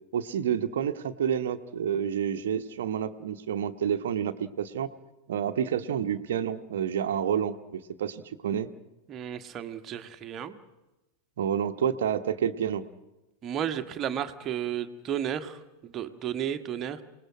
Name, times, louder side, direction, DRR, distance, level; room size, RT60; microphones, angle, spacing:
voice 1, 0.1-4.9 5.3-8.7 11.4-12.8, right 8 dB, 60° right, 7 dB, 1.1 m, -29 dB
voice 2, 9.1-10.6 13.4-17.0, right 9 dB, 30° right, 9 dB, 1.5 m, -33 dB
28.0 x 19.0 x 6.4 m, 1.0 s
figure-of-eight pair, 90°, 0 cm